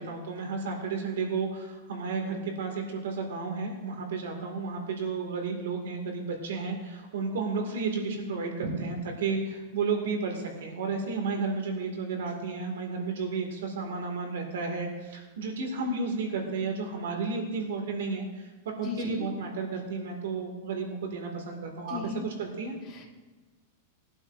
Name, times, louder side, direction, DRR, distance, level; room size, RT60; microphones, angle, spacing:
voice 1, 0.0-22.8, right 4 dB, 90° right, 2 dB, 2.4 m, -32 dB
voice 2, 18.8-19.3 21.9-22.3 22.9-23.1, left 6 dB, 25° left, -1 dB, 1.9 m, -36 dB
20.5 x 11.5 x 2.7 m, 1.3 s
supercardioid pair, 180°, 0 cm